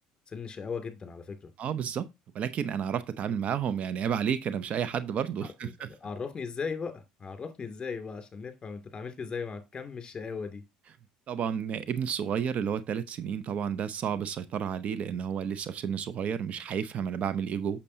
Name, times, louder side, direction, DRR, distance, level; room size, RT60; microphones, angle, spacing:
voice 1, 0.3-1.5 5.4-5.7 6.0-10.6, left 5 dB, 30° left, 2.4 m, -37 dB
voice 2, 1.6-2.1 2.3-5.9 11.3-17.8, right 8 dB, 50° right, 0.7 m, -31 dB
8.3 x 6.7 x 2.7 m
hypercardioid pair, 75°, 3 cm